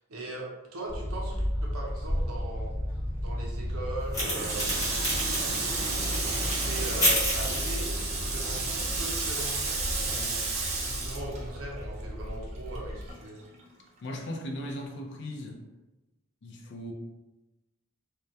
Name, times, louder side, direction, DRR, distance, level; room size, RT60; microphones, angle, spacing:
voice 1, 0.1-4.7 5.3-10.5 10.8-13.4, right 2 dB, 80° right, -2 dB, 0.6 m, -40 dB
sound 1, 0.9-13.1, equal, 10° right, 0.7 m, -35 dB
sound 2, 4.1-9.2, equal, 15° left, 0.9 m, -32 dB
Water tap faucet, 4.2-12.0 12.3-13.6, right 3 dB, 30° right, 0.4 m, -32 dB
voice 2, 14.0-15.6 16.4-16.9, left 1 dB, 55° left, 1 dB, 0.4 m, -37 dB
2.2 x 2.1 x 2.7 m, 1.1 s
head